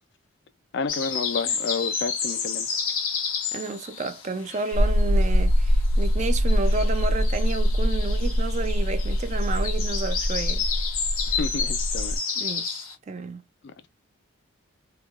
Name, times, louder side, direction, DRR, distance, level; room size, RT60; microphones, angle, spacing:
voice 1, 0.7-2.7 11.3-12.2 13.6-13.7, left 4 dB, 55° left, 0.3 m, -30 dB
sound 1, 0.9-5.2 5.5-12.9, left 6 dB, 90° left, 1.0 m, -31 dB
voice 2, 3.5-10.6 12.4-13.4, right 3 dB, 35° right, 0.3 m, -31 dB
sound 2, 4.7-12.2, equal, 85° right, 0.5 m, -23 dB
3.0 x 2.3 x 2.3 m
head